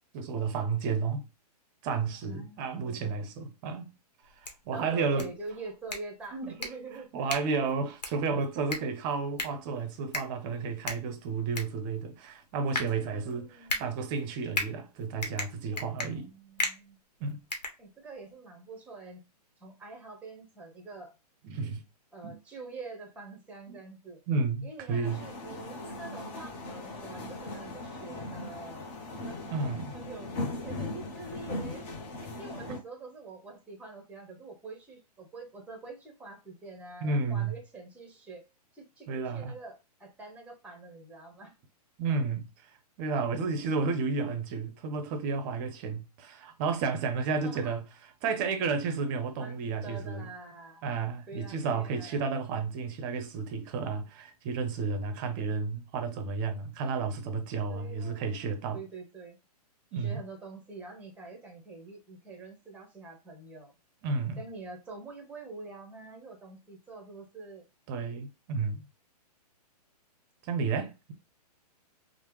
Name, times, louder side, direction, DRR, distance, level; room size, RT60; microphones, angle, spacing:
voice 1, 0.1-1.2 1.8-3.9 4.4-5.3 6.3-6.5 7.1-16.3 17.2-17.4 21.4-21.8 22.2-22.4 23.7-23.8 24.3-25.2 29.5-29.9 32.7-32.8 37.0-37.6 39.1-39.5 42.0-47.8 48.2-50.3 50.8-58.8 59.9-60.2 64.0-64.4 67.9-68.8 70.4-71.1, right 4 dB, 35° right, 0.6 m, -32 dB
voice 2, 2.2-3.2 4.7-7.1 12.9-13.9 16.0-17.0 17.8-19.2 19.6-21.1 22.1-24.2 24.6-28.9 29.2-29.4 29.9-30.3 30.6-31.9 32.4-38.4 38.7-41.5 47.2-47.8 49.4-50.9 51.3-52.2 57.7-59.4 59.9-63.7 64.4-67.7, right 3 dB, 5° right, 0.8 m, -46 dB
sound 1, 4.2-18.3, left 2 dB, 85° left, 0.9 m, -38 dB
sound 2, 25.0-32.8, left 2 dB, 30° left, 0.8 m, -39 dB
3.2 x 2.1 x 3.0 m
hypercardioid pair, 130°, 21 cm